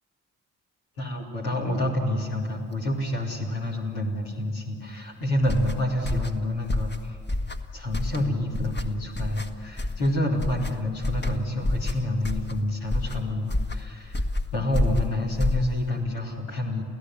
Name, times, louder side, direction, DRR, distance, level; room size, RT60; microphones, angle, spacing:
voice 1, 1.0-7.2 7.7-14.2 14.5-16.8, left 1 dB, 85° left, -2 dB, 3.3 m, -28 dB
sound 1, 5.4-16.0, left 2 dB, 30° left, 1.5 m, -29 dB
29.0 x 16.0 x 7.6 m, 2.1 s
hypercardioid pair, 40°, 36 cm